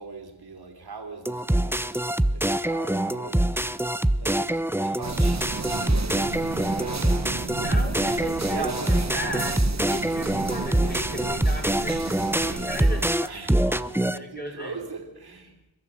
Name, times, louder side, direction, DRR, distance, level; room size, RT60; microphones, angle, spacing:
voice 1, 0.0-3.7 4.2-7.9 8.5-8.9 13.3-13.6 14.0-15.6, right 4 dB, 75° right, 3.7 m, -40 dB
sound 1, 1.2-14.2, right 1 dB, 5° right, 0.8 m, -25 dB
sound 2, 5.0-13.1, right 4 dB, 45° right, 1.4 m, -33 dB
voice 2, 7.6-9.6 9.9-12.2 12.5-13.8 14.1-14.8, left 1 dB, 25° left, 5.7 m, -37 dB
29.5 x 12.0 x 7.7 m
cardioid pair, 50°, 38 cm